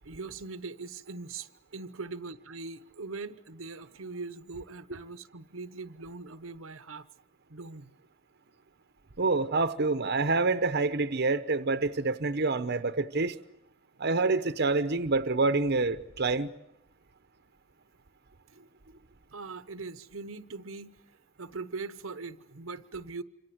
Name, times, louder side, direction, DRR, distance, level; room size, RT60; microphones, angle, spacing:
voice 1, 0.0-7.1 7.5-7.9 18.5-18.6 19.3-21.0 21.4-23.2, right 4 dB, 80° right, 1.0 m, -41 dB
voice 2, 9.2-13.3 14.0-16.5, right 3 dB, 55° right, 0.9 m, -27 dB
27.0 x 26.0 x 7.9 m
head